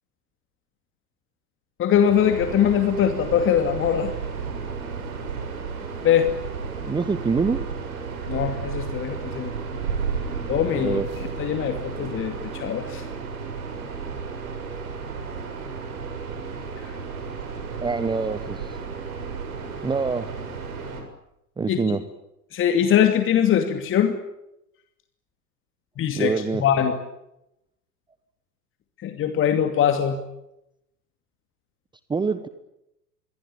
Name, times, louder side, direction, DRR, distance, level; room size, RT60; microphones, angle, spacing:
voice 1, 1.8-4.1 6.0-6.3 8.3-9.5 10.5-13.0 16.8-16.9 21.7-22.0 22.5-24.2 26.0-26.3 26.6-27.0 29.0-30.2, left 9 dB, 25° left, 7 dB, 2.6 m, -22 dB
sound 1, 1.9-21.0, right 5 dB, 60° right, 7.5 m, -33 dB
voice 2, 6.8-7.6 10.8-11.1 17.8-18.7 19.8-20.2 21.6-22.0 26.1-26.6 32.1-32.5, right 4 dB, 10° right, 13 dB, 1.2 m, -25 dB
26.5 x 23.5 x 8.7 m, 0.84 s
figure-of-eight pair, 95°, 47 cm